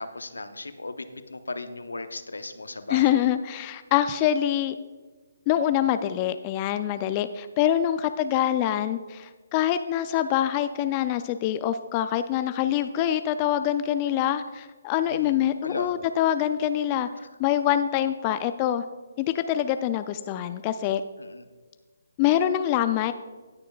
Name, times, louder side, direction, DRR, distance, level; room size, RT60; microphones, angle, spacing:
voice 1, 0.0-3.3 15.1-15.9 21.2-21.4, left 2 dB, 85° left, 9 dB, 0.7 m, -36 dB
voice 2, 2.9-4.7 5.5-17.1 17.4-18.8 19.2-21.0 22.2-23.1, left 11 dB, 25° left, 11 dB, 0.3 m, -25 dB
18.5 x 6.8 x 2.3 m, 1.3 s
figure-of-eight pair, 145°, 0 cm